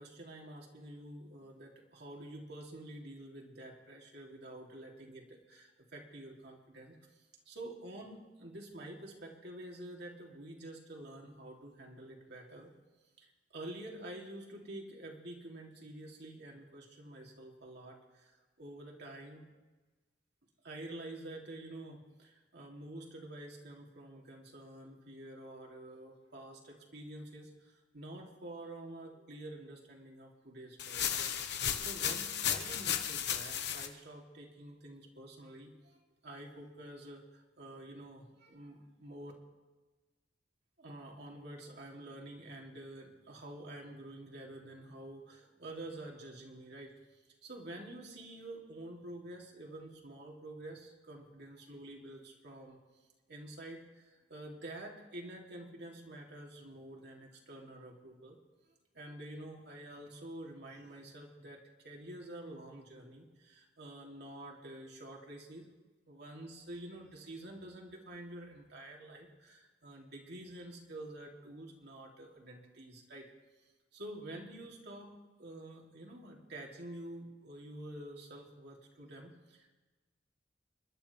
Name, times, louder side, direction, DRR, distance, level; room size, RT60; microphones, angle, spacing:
voice 1, 0.0-7.0 7.5-12.7 13.2-19.4 20.6-36.0 36.2-39.3 40.8-52.8 53.3-58.4 58.9-65.7 66.1-73.3 73.6-75.1 75.4-79.7, right 1 dB, 65° right, -1 dB, 3.0 m, -48 dB
sound 1, 30.8-33.9, left 9 dB, 65° left, 1.3 m, -34 dB
29.5 x 12.0 x 3.5 m, 1.2 s
head